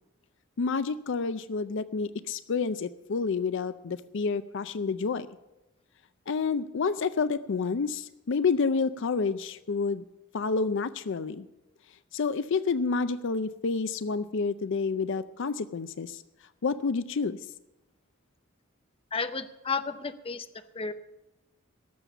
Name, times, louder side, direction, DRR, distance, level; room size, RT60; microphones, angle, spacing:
voice 1, 0.6-5.3 6.3-10.0 10.3-11.5 12.1-16.2 16.6-17.4, left 4 dB, 65° left, 14 dB, 0.5 m, -29 dB
voice 2, 19.1-20.5 20.7-20.9, left 4 dB, 30° left, 10 dB, 0.7 m, -32 dB
18.0 x 7.2 x 6.9 m, 0.98 s
head